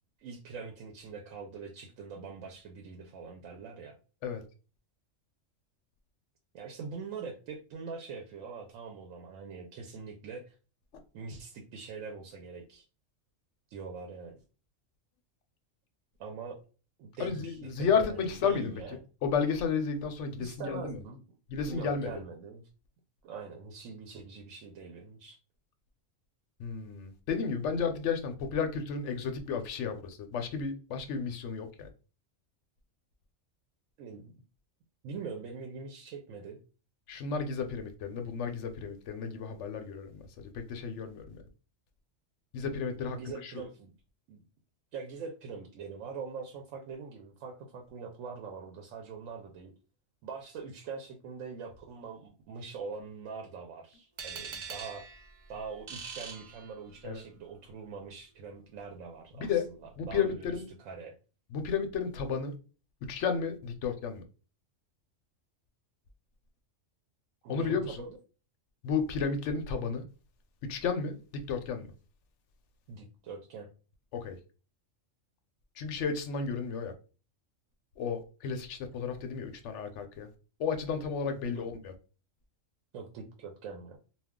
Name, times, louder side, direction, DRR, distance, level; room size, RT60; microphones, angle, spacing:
voice 1, 0.2-4.0 6.5-10.5 11.1-12.8 13.7-14.3 16.2-16.6 17.0-19.0 20.4-21.2 21.7-22.7 23.2-25.4 34.0-34.3 35.0-36.6 43.1-43.9 44.3-44.4 44.9-49.7 50.2-55.0 55.5-60.5 60.8-61.1 67.4-68.2 72.9-73.7 81.4-81.7 82.9-84.0, right 5 dB, 85° right, 1.0 m, -43 dB
voice 2, 17.2-21.0 21.5-22.1 26.6-31.9 37.1-41.4 42.5-43.6 57.0-57.2 59.4-59.7 60.0-60.7 61.5-62.5 63.1-64.2 67.5-68.0 68.8-70.0 70.6-71.9 74.1-74.4 75.8-76.9 78.0-80.3 80.6-81.9, left 6 dB, 70° left, 0.9 m, -32 dB
sound 1, 54.2-57.2, right 6 dB, 60° right, 0.5 m, -44 dB
2.3 x 2.3 x 3.5 m
omnidirectional pair, 1.3 m